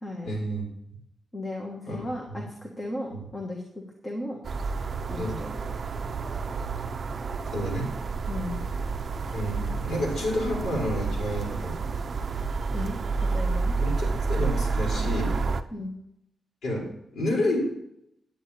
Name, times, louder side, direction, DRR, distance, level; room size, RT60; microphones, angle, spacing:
voice 1, 0.2-0.6 1.9-2.1 2.3-2.4 3.1-3.2 5.2-5.4 7.5-7.9 9.3-11.8 13.8-15.4 16.6-16.8 17.1-17.6, left 1 dB, 85° left, -3 dB, 4.6 m, -29 dB
voice 2, 1.3-4.4 5.1-5.8 8.3-8.6 12.7-13.0 13.3-13.7 15.7-15.9, left 1 dB, 20° left, 0 dB, 1.3 m, -35 dB
sound 1, 4.4-15.6, right 4 dB, 45° right, 0.5 m, -29 dB
9.7 x 8.7 x 4.3 m, 0.78 s
wide cardioid pair, 160°, 0 cm